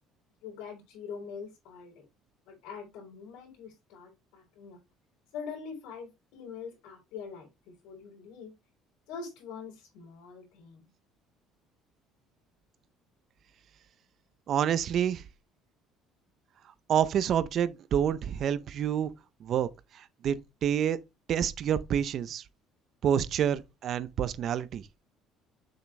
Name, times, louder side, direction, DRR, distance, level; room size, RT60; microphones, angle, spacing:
voice 1, 0.4-2.0 2.5-4.8 5.3-7.5 7.8-8.5 9.1-10.9, left 6 dB, 85° left, 4.0 m, -43 dB
voice 2, 14.5-15.2 16.9-19.1 19.4-19.7 20.2-21.0 21.3-22.4 23.0-24.8, right 9 dB, 40° right, 0.6 m, -28 dB
7.2 x 6.1 x 3.3 m
cardioid pair, 155°, 0 cm